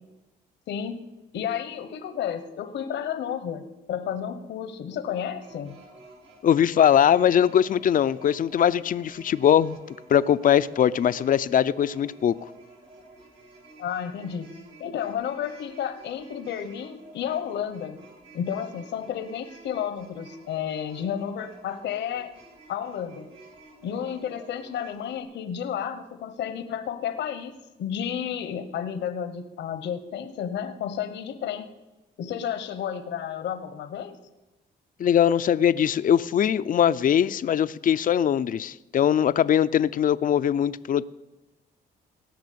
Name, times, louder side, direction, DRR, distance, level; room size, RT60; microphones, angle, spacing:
voice 1, 0.7-1.0 1.3-5.7 13.8-18.0 18.3-22.3 22.7-23.3 23.8-31.7 32.2-34.2, left 8 dB, 75° left, 10 dB, 1.0 m, -32 dB
sound 1, 5.4-25.2, right 2 dB, 70° right, 5.2 m, -51 dB
voice 2, 6.4-9.8 10.1-12.3 35.0-41.1, left 9 dB, 50° left, 15 dB, 0.5 m, -21 dB
17.5 x 6.1 x 8.5 m, 1.0 s
cardioid pair, 75°, 18 cm